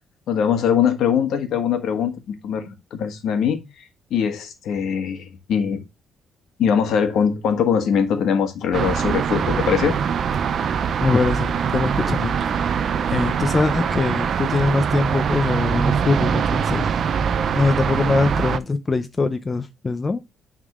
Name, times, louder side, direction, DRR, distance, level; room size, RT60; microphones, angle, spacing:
voice 1, 0.3-3.6 4.1-5.8 6.6-10.0, left 7 dB, 70° left, 1.4 m, -22 dB
sound 1, 8.7-18.6, right 7 dB, 50° right, 0.5 m, -23 dB
voice 2, 11.0-12.8 13.1-16.9 17.2-17.3 17.5-20.2, left 3 dB, 20° left, 0.6 m, -23 dB
9.6 x 3.7 x 3.6 m
cardioid pair, 140°, 0 cm